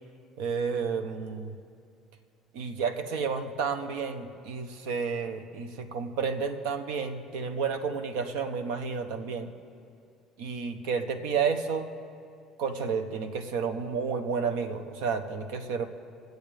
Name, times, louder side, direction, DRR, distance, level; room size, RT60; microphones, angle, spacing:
voice 1, 0.4-1.6 2.5-9.5 10.4-11.9 12.6-15.9, right 5 dB, 80° right, 9 dB, 1.0 m, -31 dB
23.0 x 7.9 x 3.5 m, 2.3 s
supercardioid pair, 90°, 0 cm